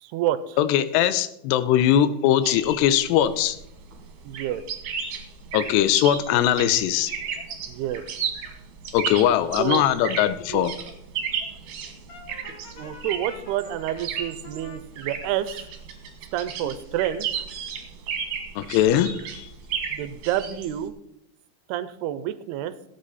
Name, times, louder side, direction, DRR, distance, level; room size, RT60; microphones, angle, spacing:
voice 1, 0.0-0.6 4.2-4.6 7.7-8.0 9.6-9.8 10.5-10.7 12.7-15.6 16.3-17.4 19.9-20.9 21.7-22.7, right 12 dB, 85° right, 14 dB, 2.6 m, -28 dB
voice 2, 0.6-3.6 5.5-7.1 8.9-10.7 18.6-19.5, left 11 dB, 90° left, 14 dB, 2.8 m, -21 dB
sound 1, 2.4-20.9, right 7 dB, 60° right, 2.6 m, -34 dB
Brass instrument, 12.1-14.8, left 3 dB, 55° left, 1.2 m, -46 dB
16.5 x 8.5 x 4.2 m, 0.79 s
omnidirectional pair, 4.7 m